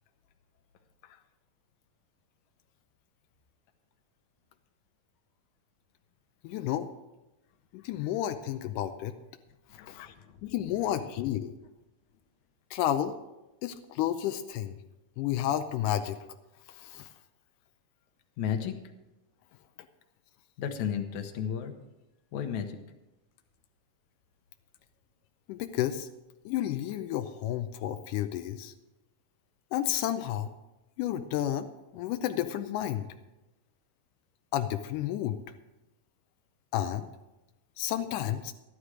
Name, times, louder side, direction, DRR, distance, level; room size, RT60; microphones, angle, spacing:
voice 1, 6.4-6.9 7.7-9.2 9.8-10.1 10.4-11.5 12.7-13.1 13.6-14.8 15.2-16.2 16.7-17.1 25.5-26.1 26.5-28.7 29.7-30.5 31.0-31.7 31.9-33.1 34.5-35.4 36.7-37.1 37.8-38.5, left 11 dB, 90° left, 8 dB, 2.2 m, -31 dB
voice 2, 9.7-10.5 18.4-18.8 20.6-21.7 22.3-22.8, left 8 dB, 75° left, 6 dB, 2.3 m, -33 dB
13.0 x 11.5 x 4.9 m, 0.99 s
omnidirectional pair, 3.6 m